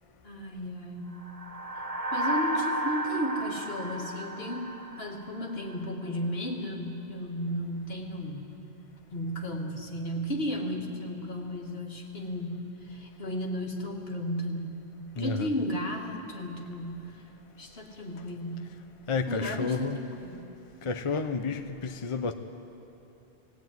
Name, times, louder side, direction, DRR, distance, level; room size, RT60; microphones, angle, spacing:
voice 1, 0.2-1.1 2.1-8.5 9.1-14.8 15.1-17.2 17.6-18.7 19.3-20.5, equal, 70° left, 0 dB, 2.4 m, -34 dB
sound 1, 1.2-5.7, right 1 dB, 35° right, 1.2 m, -33 dB
voice 2, 15.2-15.5 19.1-20.0 20.8-22.3, left 4 dB, 35° left, 7 dB, 0.8 m, -31 dB
20.5 x 17.0 x 9.4 m, 2.8 s
omnidirectional pair, 1.1 m